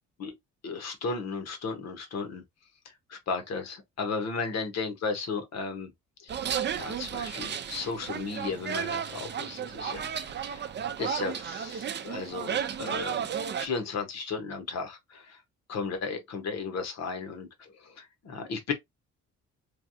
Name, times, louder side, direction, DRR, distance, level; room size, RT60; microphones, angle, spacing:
voice 1, 0.6-2.4 3.1-5.9 6.2-6.3 6.7-10.7 11.0-15.4 15.7-18.7, left 4 dB, 60° left, 1.2 m, -35 dB
sound 1, 6.3-13.7, right 8 dB, 35° right, 0.5 m, -33 dB
3.3 x 2.3 x 2.7 m
cardioid pair, 90°, 30 cm